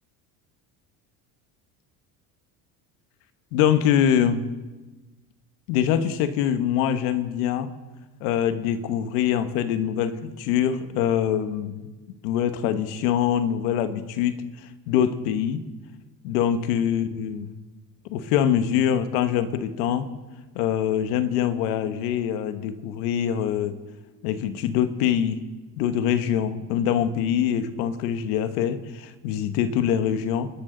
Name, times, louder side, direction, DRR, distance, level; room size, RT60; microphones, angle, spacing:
voice 1, 3.5-4.4 5.7-7.7 8.2-11.9 12.2-15.6 16.2-17.6 18.1-20.1 20.5-23.8 24.2-25.4 25.8-30.5, left 9 dB, 85° left, 11 dB, 1.3 m, -24 dB
27.0 x 12.5 x 3.9 m, 1.2 s
supercardioid pair, 85°, 45 cm